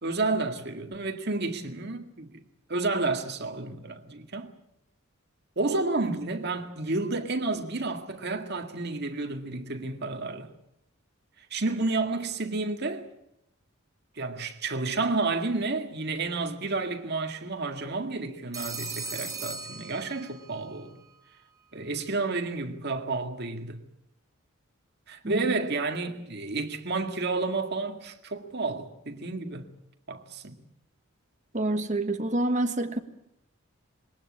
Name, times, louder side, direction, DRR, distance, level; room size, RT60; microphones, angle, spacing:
voice 1, 0.0-2.4 2.7-4.5 5.6-10.5 11.5-13.1 14.2-21.0 21.7-23.8 25.1-29.7 30.1-30.6, right 3 dB, 50° right, 2.0 m, -31 dB
Telephone, 18.5-20.6, right 4 dB, 15° right, 1.5 m, -38 dB
voice 2, 31.5-33.0, right 2 dB, 35° right, 1.5 m, -27 dB
21.5 x 18.5 x 8.6 m
head